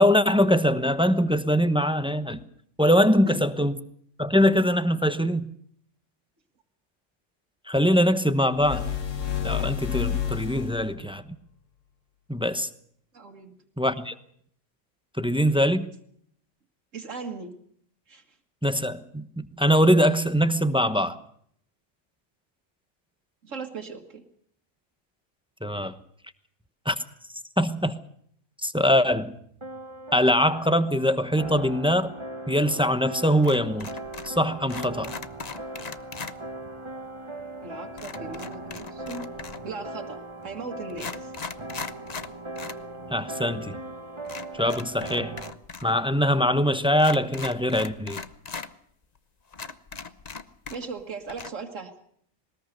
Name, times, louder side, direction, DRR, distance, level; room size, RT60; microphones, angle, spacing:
voice 1, 0.0-2.4 2.8-3.9 4.2-5.5 7.7-8.9 9.4-11.2 12.3-12.7 13.8-14.1 15.2-15.9 18.6-21.2 25.6-25.9 26.9-27.0 27.6-28.0 28.6-29.3 30.1-32.1 32.5-33.9 34.2-35.1 43.1-43.8 44.5-45.3 45.8-48.2, equal, 5° right, 0.9 m, -22 dB
sound 1, 8.6-11.0, left 9 dB, 80° left, 2.0 m, -29 dB
voice 2, 13.1-13.5 16.9-17.6 18.1-18.2 23.4-24.2 37.6-39.3 39.6-41.3 50.7-51.9, right 4 dB, 85° right, 2.2 m, -38 dB
sound 2, 29.0-45.5, right 2 dB, 25° right, 1.4 m, -39 dB
sound 3, 33.4-34.4 34.7-36.4 38.0-39.7 40.4-40.5 40.9-42.8 43.1-43.2 44.2-45.9 46.2-46.3 47.0-48.7 49.2-49.3 49.5-51.0 51.3-51.5, left 5 dB, 35° left, 1.0 m, -39 dB
21.0 x 20.0 x 6.6 m
omnidirectional pair, 1.3 m